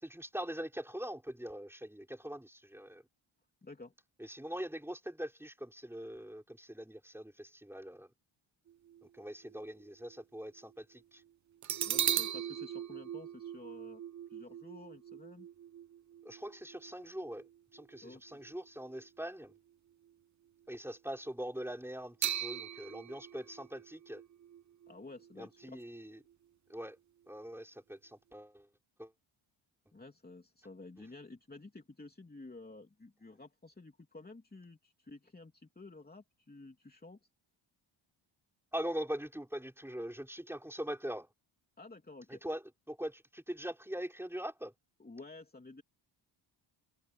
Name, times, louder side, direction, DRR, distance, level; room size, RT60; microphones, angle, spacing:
voice 1, 0.0-3.0 4.2-8.1 9.0-11.2 16.2-19.6 20.7-24.2 25.4-26.2 26.7-27.0 27.3-28.7 29.0-29.1 38.7-41.3 42.3-42.6 42.9-44.7, equal, 5° right, 5.7 m, -42 dB
voice 2, 3.6-3.9 11.8-14.0 14.3-15.5 18.0-18.4 24.9-25.8 29.9-37.2 41.8-42.4 45.0-45.8, left 2 dB, 20° left, 3.3 m, -52 dB
sound 1, 8.7-10.2 10.7-10.8 11.6-19.1 19.4-19.6 22.2-26.0 26.3-26.4, right 10 dB, 40° right, 0.5 m, -40 dB
cardioid pair, 105°, 49 cm